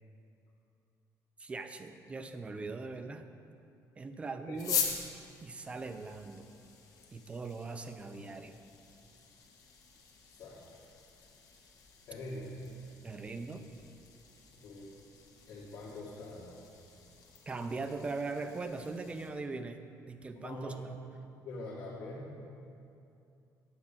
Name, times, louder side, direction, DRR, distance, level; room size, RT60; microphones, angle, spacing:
voice 1, 1.4-3.2 4.0-4.9 5.4-6.5 7.1-8.6 13.0-13.6 17.5-21.0, right 3 dB, 15° right, 8 dB, 0.4 m, -40 dB
sound 1, 4.5-19.3, left 6 dB, 55° left, 1.2 m, -43 dB
voice 2, 10.3-10.6 12.1-12.6 14.6-14.8 15.5-16.6 20.3-20.8 21.4-22.4, left 2 dB, 85° left, -9 dB, 1.8 m, -44 dB
9.6 x 4.8 x 7.2 m, 2.6 s
cardioid pair, 165°, 7 cm